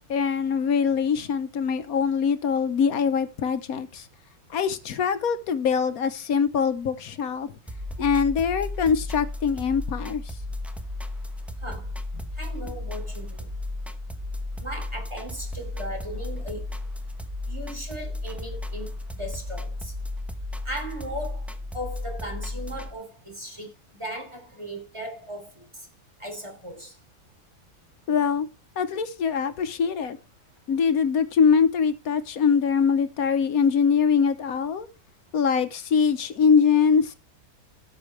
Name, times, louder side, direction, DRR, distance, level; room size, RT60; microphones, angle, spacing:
voice 1, 0.1-4.1 4.5-7.5 8.0-10.4 28.1-28.5 28.8-30.2 30.7-34.9 35.3-37.2, left 6 dB, 80° left, 1.4 m, -23 dB
sound 1, 7.7-22.9, left 2 dB, ahead, 0.9 m, -34 dB
voice 2, 12.4-13.4 14.6-16.6 17.5-18.9 19.2-19.9 20.7-21.4 21.7-23.7 24.0-25.5 26.2-26.9, equal, 20° right, 3.7 m, -37 dB
17.0 x 6.9 x 3.3 m
omnidirectional pair, 1.5 m